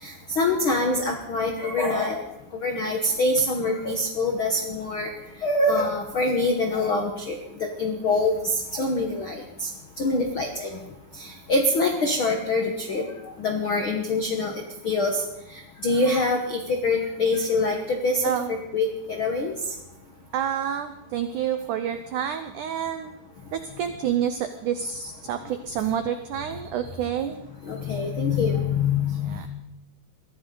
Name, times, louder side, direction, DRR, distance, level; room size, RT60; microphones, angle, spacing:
voice 1, 0.0-2.2 2.6-5.1 5.4-7.3 7.8-9.7 10.0-10.8 11.2-13.0 13.4-14.5 14.8-15.2 15.8-18.2 18.5-19.5 27.7-29.5, left 2 dB, 85° left, 3 dB, 1.1 m, -24 dB
voice 2, 18.2-18.6 20.3-23.1 23.5-27.4 29.3-29.5, right 9 dB, 85° right, 9 dB, 1.7 m, -28 dB
22.0 x 15.0 x 4.0 m, 0.90 s
omnidirectional pair, 4.7 m